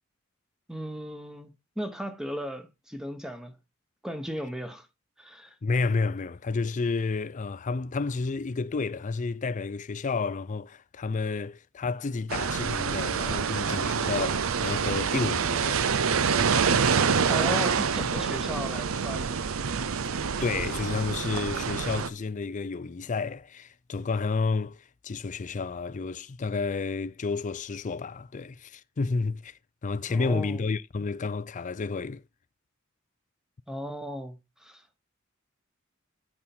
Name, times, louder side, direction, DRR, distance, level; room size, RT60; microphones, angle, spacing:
voice 1, 0.7-3.5 4.0-4.9 5.2-5.6 17.3-19.4 30.1-30.6 33.7-34.8, equal, 5° right, 1.1 m, -36 dB
voice 2, 5.6-15.8 20.4-32.2, left 4 dB, 40° left, 0.4 m, -31 dB
sound 1, 12.3-22.1, right 6 dB, 80° right, 0.6 m, -26 dB
8.6 x 5.4 x 4.3 m
head